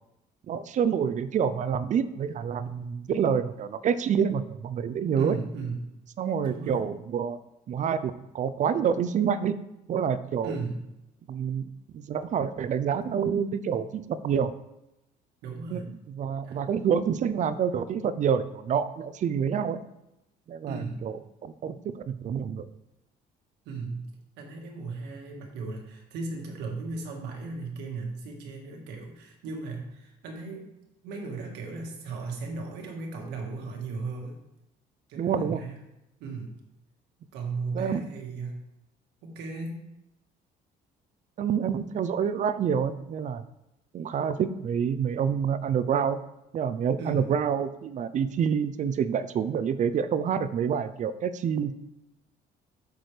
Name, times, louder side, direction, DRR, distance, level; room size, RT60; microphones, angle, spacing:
voice 1, 0.5-5.3 6.2-7.4 7.7-9.5 9.9-10.6 11.3-11.7 11.9-14.5 15.7-19.8 20.5-21.2 21.4-22.7 35.2-35.6 37.7-38.0 41.4-43.4 43.9-46.2 46.5-51.7, right 7 dB, 45° right, 13 dB, 0.5 m, -27 dB
voice 2, 5.2-5.9 6.4-6.8 10.4-10.9 15.4-15.9 16.4-16.6 20.7-21.1 23.6-24.1 24.4-30.7 31.0-34.4 35.1-35.8 36.2-36.6 37.3-38.6 39.2-39.8 47.0-47.3, right 3 dB, 90° right, 2 dB, 1.7 m, -36 dB
8.1 x 6.1 x 3.3 m, 0.89 s
cardioid pair, 110°, 17 cm